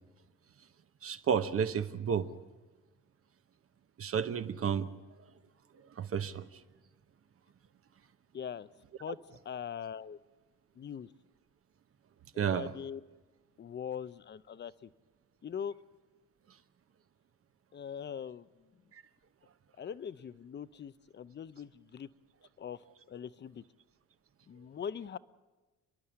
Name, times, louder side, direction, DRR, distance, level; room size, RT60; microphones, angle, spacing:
voice 1, 1.0-2.3 4.0-4.9 6.0-6.4 12.4-12.7, right 7 dB, 45° right, 10 dB, 1.0 m, -31 dB
voice 2, 8.3-8.7 9.0-10.2 10.8-11.1 12.3-13.0 13.6-14.9 15.4-15.7 17.7-18.7 19.8-22.1 22.6-22.8 23.1-23.6 24.5-25.2, left 8 dB, 35° left, 16 dB, 0.6 m, -41 dB
30.0 x 11.0 x 8.7 m, 1.2 s
cardioid pair, 115°, 31 cm